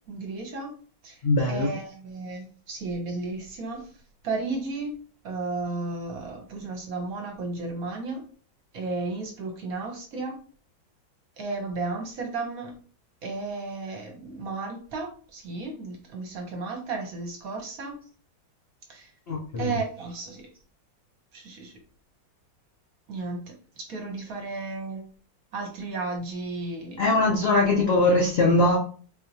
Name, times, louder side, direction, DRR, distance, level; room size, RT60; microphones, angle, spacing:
voice 1, 0.1-0.7 1.0-3.9 4.2-4.9 5.2-8.2 8.7-10.4 11.4-12.7 13.2-17.9 18.9-19.1 19.6-20.5 21.3-21.7 23.1-25.1 25.5-27.1, right 3 dB, 60° right, 2 dB, 1.1 m, -34 dB
voice 2, 1.2-1.7 19.3-19.8 27.0-28.8, left 2 dB, 70° left, -1 dB, 0.6 m, -21 dB
4.5 x 2.9 x 2.6 m, 0.42 s
omnidirectional pair, 2.0 m